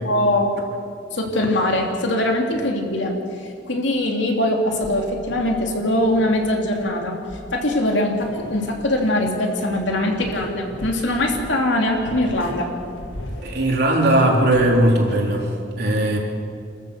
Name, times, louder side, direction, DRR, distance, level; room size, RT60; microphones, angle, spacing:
voice 1, 0.0-0.5 1.1-7.2 7.5-12.7, left 1 dB, 70° left, 1 dB, 2.8 m, -22 dB
sound 1, 4.6-15.5, left 1 dB, 85° left, 2.1 m, -39 dB
voice 2, 13.4-16.2, right 1 dB, 55° right, -1 dB, 3.5 m, -18 dB
28.0 x 14.0 x 6.7 m, 2.4 s
head